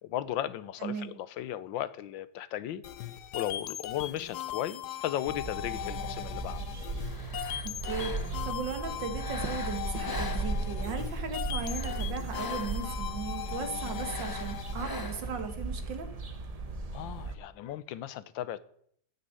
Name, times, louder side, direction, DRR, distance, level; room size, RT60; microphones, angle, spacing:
voice 1, 0.0-2.8 3.3-6.6 16.9-18.6, left 12 dB, 90° left, 1.5 m, -36 dB
voice 2, 0.8-1.1 7.6-16.1, right 5 dB, 75° right, 2.3 m, -37 dB
sound 1, 2.8-14.8, left 12 dB, 65° left, 1.2 m, -39 dB
sound 2, 5.3-17.3, right 3 dB, 30° right, 0.7 m, -37 dB
sound 3, 7.0-8.5 9.1-11.0 11.5-13.0 13.9-15.5, left 2 dB, 25° left, 0.4 m, -43 dB
12.0 x 6.8 x 9.4 m
omnidirectional pair, 2.0 m